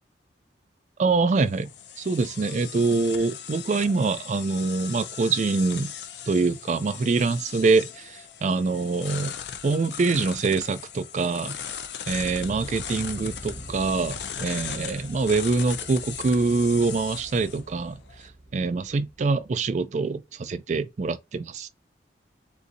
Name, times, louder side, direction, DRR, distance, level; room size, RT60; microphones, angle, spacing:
voice 1, 1.0-1.7 2.0-5.9 6.3-9.3 9.6-11.6 12.1-18.0 18.5-21.7, right 4 dB, 40° right, 0.3 m, -25 dB
sound 1, 1.1-18.3, left 9 dB, 70° left, 0.5 m, -38 dB
sound 2, 12.1-19.8, right 1 dB, 35° left, 0.8 m, -44 dB
3.8 x 2.5 x 2.6 m
head